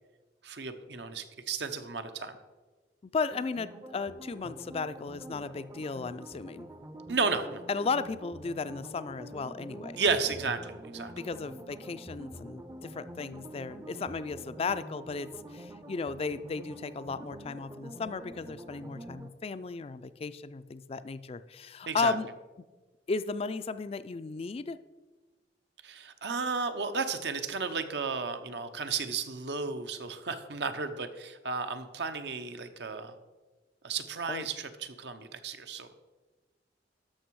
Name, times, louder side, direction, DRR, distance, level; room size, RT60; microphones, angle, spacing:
voice 1, 0.4-2.4 7.1-7.6 10.0-11.1 21.9-22.1 25.8-33.2 33.8-35.9, right 4 dB, 70° right, 9 dB, 0.8 m, -33 dB
voice 2, 3.0-6.7 7.7-10.0 11.2-22.3 22.6-22.7 23.1-24.8 34.3-34.5, left 4 dB, 35° left, 14 dB, 0.4 m, -35 dB
sound 1, 3.3-19.3, right 1 dB, 15° right, 0.6 m, -46 dB
13.0 x 6.1 x 4.7 m, 1.3 s
head